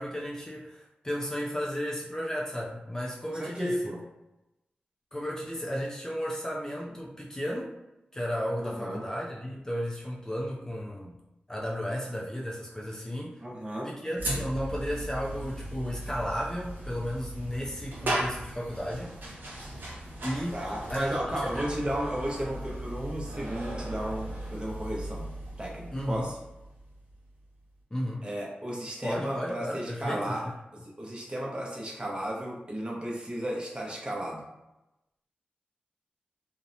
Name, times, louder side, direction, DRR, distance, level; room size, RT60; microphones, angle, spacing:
voice 1, 0.0-3.9 5.1-7.7 8.1-11.2 11.5-13.4 13.8-19.2 20.2-21.1 21.4-21.6 25.9-26.3 27.9-28.2 29.0-30.5, equal, 15° left, -3 dB, 0.4 m, -34 dB
voice 2, 3.4-4.0 8.6-9.0 13.4-13.9 20.5-26.3 28.2-30.4 30.8-34.4, right 1 dB, 30° right, -2 dB, 0.7 m, -34 dB
sound 1, 14.2-27.4, right 1 dB, 70° right, 0.7 m, -37 dB
2.7 x 2.1 x 2.5 m, 0.95 s
wide cardioid pair, 75°, 3 cm